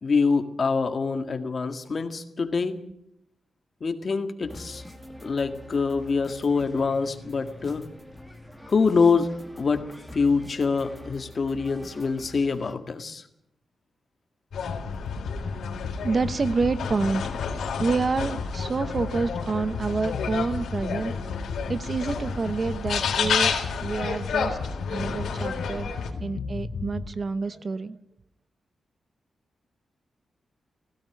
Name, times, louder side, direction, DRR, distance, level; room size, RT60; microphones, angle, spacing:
voice 1, 0.0-2.8 3.8-4.8 5.2-7.9 8.7-9.3 9.6-9.9 10.1-13.2, left 4 dB, 40° left, 7 dB, 1.9 m, -25 dB
sound 1, 4.4-12.7, left 1 dB, 5° right, 2.5 m, -45 dB
sound 2, 14.5-26.1, left 6 dB, 90° left, 3.9 m, -31 dB
sound 3, 14.5-27.1, left 4 dB, 65° left, 3.0 m, -34 dB
voice 2, 15.8-17.2 17.8-21.1 21.7-23.5 23.8-24.6 24.9-25.9 26.2-28.0, right 4 dB, 35° right, 13 dB, 0.8 m, -28 dB
17.0 x 16.5 x 9.9 m, 0.80 s
wide cardioid pair, 140°, 0 cm